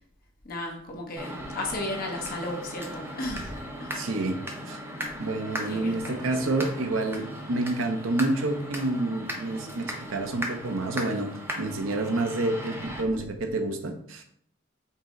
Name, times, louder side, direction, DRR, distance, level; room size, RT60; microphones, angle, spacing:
voice 1, 0.4-3.9 5.7-6.6, left 1 dB, 45° left, 0 dB, 0.9 m, -35 dB
sound 1, 1.2-13.0, equal, 10° right, 0.6 m, -37 dB
voice 2, 3.9-4.4 4.7-4.8 5.2-11.3 11.6-14.2, right 2 dB, 70° right, 5 dB, 0.6 m, -28 dB
5.4 x 2.0 x 3.7 m, 0.67 s
head